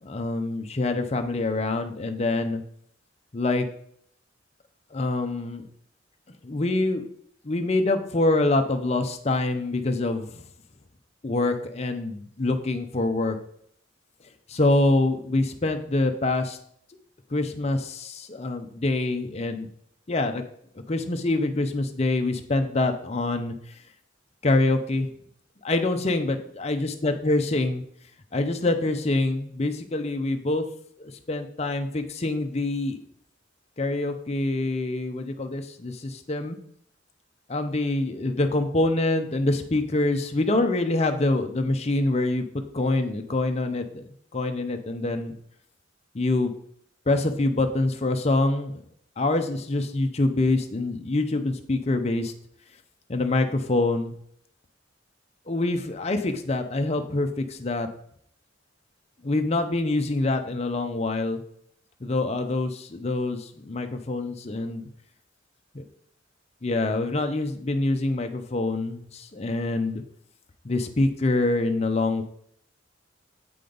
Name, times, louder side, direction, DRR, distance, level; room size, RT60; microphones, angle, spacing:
voice 1, 0.0-2.6 3.3-3.7 4.9-5.6 6.4-7.0 7.4-10.4 11.2-13.4 14.5-16.6 17.3-19.7 20.1-20.4 20.9-23.5 24.4-25.1 25.6-27.8 28.3-30.6 31.0-33.0 33.8-36.6 37.5-42.5 42.7-44.0 44.3-45.3 46.1-46.5 47.1-48.8 49.2-52.3 53.1-54.1 55.5-57.9 59.2-61.4 62.0-64.9 65.7-65.8 66.6-70.0 70.6-72.2, left 2 dB, 35° left, 6 dB, 0.6 m, -25 dB
7.7 x 5.1 x 3.9 m, 0.66 s
head